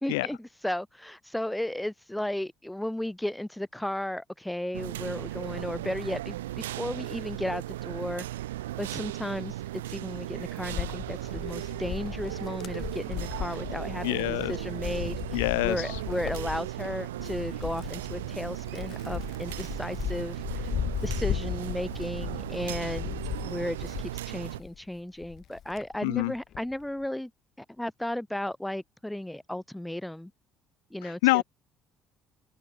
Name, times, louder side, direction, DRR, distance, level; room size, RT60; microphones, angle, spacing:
voice 1, 0.0-8.3 8.8-9.6 9.9-20.7 21.0-27.3 27.6-30.3 30.9-31.4, left 1 dB, 5° left, 3.7 m, -34 dB
sound 1, 4.7-24.6, right 15 dB, 90° right, 0.5 m, -36 dB
Wind, 10.7-24.8 25.2-26.7, left 10 dB, 55° left, 2.5 m, -37 dB
voice 2, 14.0-14.5 15.3-16.0 26.0-26.3 31.0-31.4, left 24 dB, 80° left, 0.4 m, -26 dB
hypercardioid pair, 60°, 0 cm